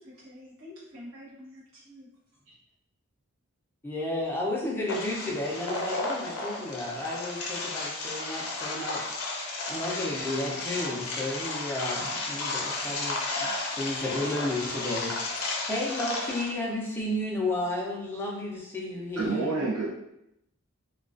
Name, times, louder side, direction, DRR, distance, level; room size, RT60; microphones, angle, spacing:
voice 1, 0.0-2.1 2.5-2.6, left 1 dB, 70° right, -8 dB, 0.9 m, -47 dB
voice 2, 3.8-9.0 9.3-9.4 9.7-13.5 13.8-19.6, left 1 dB, 10° left, -3 dB, 0.4 m, -32 dB
sound 1, 4.9-16.5, left 2 dB, 80° left, 0.5 m, -33 dB
voice 3, 19.2-19.9, right 3 dB, 90° right, -9 dB, 0.6 m, -28 dB
2.3 x 2.2 x 2.4 m, 0.83 s
head